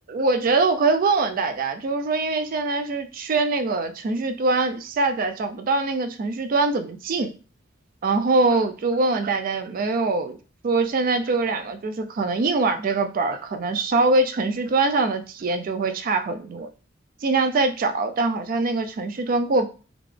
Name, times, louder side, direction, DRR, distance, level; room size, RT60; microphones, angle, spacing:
voice 1, 0.1-7.3 8.0-10.4 10.6-16.7 17.2-19.7, right 3 dB, 50° right, 8 dB, 0.4 m, -23 dB
3.7 x 2.4 x 3.3 m, 0.36 s
head